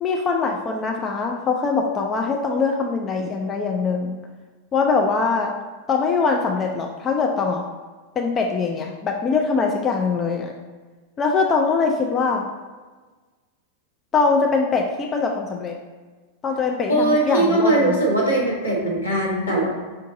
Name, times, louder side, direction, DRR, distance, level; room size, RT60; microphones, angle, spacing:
voice 1, 0.0-4.2 4.7-5.5 5.9-7.6 8.2-10.5 11.2-12.4 14.1-15.8 16.4-18.0, left 4 dB, 25° left, 1 dB, 0.4 m, -22 dB
voice 2, 16.9-19.7, right 1 dB, 80° left, -5 dB, 1.3 m, -20 dB
5.4 x 2.5 x 3.7 m, 1.3 s
figure-of-eight pair, 90°, 0 cm